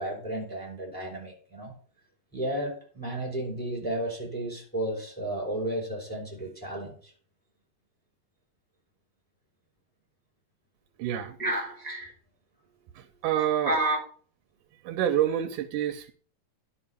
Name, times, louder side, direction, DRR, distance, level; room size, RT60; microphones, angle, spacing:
voice 1, 0.0-1.7 2.3-7.1 11.4-12.1 13.7-14.0, right 1 dB, 5° left, 4.4 m, -32 dB
voice 2, 11.0-11.4 12.9-13.8 14.7-16.1, right 11 dB, 80° right, 2.2 m, -28 dB
11.0 x 5.8 x 5.7 m
omnidirectional pair, 3.7 m